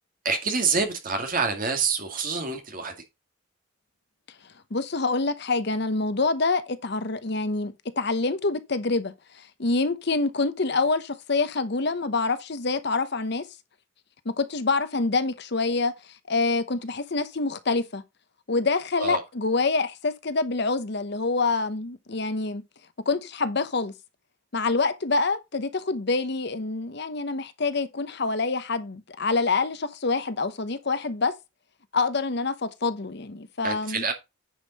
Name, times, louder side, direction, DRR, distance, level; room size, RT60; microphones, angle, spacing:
voice 1, 0.2-2.9 19.0-19.2 33.6-34.1, right 4 dB, 40° right, 2.2 m, -26 dB
voice 2, 4.7-13.5 14.2-18.0 18.5-22.6 23.0-23.9 24.5-31.3 31.9-34.0, left 3 dB, 55° left, 0.9 m, -26 dB
9.7 x 5.5 x 4.1 m
head